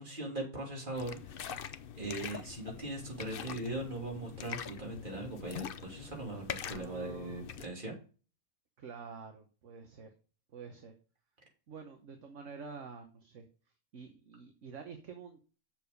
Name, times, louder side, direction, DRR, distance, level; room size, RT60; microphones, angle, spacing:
voice 1, 0.0-1.6 2.0-7.9, right 1 dB, 35° right, -1 dB, 3.1 m, -40 dB
sound 1, 0.9-7.7, left 8 dB, 55° left, 0.6 m, -44 dB
voice 2, 6.6-7.4 8.8-10.1 10.5-10.9 11.7-13.5 13.9-15.4, right 5 dB, 60° right, 5 dB, 1.4 m, -48 dB
7.5 x 6.8 x 5.3 m, 0.37 s
omnidirectional pair, 1.5 m